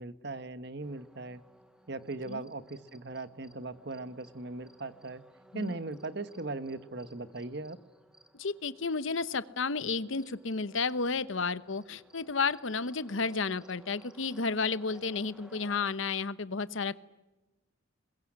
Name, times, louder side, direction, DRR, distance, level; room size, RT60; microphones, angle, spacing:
voice 1, 0.0-1.4 1.9-5.2 5.5-7.8, right 2 dB, 55° right, 13 dB, 1.2 m, -39 dB
sound 1, 0.8-15.9, equal, 5° right, 1.6 m, -59 dB
voice 2, 8.3-17.0, left 4 dB, 70° left, 16 dB, 0.9 m, -32 dB
22.5 x 22.0 x 9.8 m, 1.1 s
head